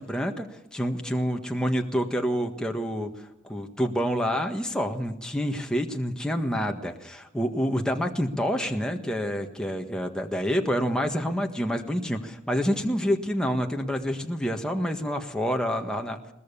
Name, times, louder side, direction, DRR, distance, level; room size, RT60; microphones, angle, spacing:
voice 1, 0.0-16.2, equal, 5° left, 3 dB, 1.6 m, -28 dB
22.0 x 20.5 x 7.0 m, 0.88 s
head